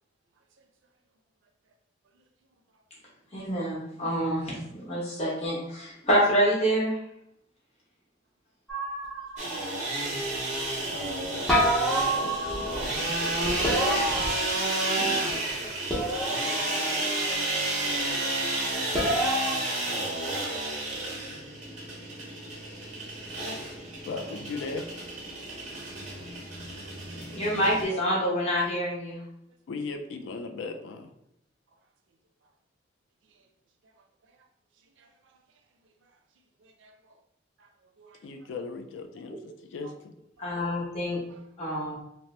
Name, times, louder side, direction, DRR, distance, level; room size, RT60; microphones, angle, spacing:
voice 1, 3.3-7.0 21.3-21.4 27.3-29.2 40.4-41.2 41.6-42.0, equal, 35° left, 1.0 m, -27 dB
sound 1, 8.7-9.6 11.5-12.9 13.6-14.9 15.9-16.7 18.9-19.6, equal, ahead, 0.7 m, -28 dB
sound 2, 9.4-27.8, right 2 dB, 35° right, 0.6 m, -31 dB
voice 2, 10.9-14.2 15.0-15.7 24.1-24.9 29.7-31.1 38.2-40.1, left 4 dB, 80° left, 0.3 m, -39 dB
voice 3, 36.6-37.1 37.6-37.7 38.0-38.2 39.8-39.9 40.4-40.5 41.1-41.4, right 4 dB, 80° right, 0.4 m, -57 dB
2.8 x 2.1 x 3.2 m
head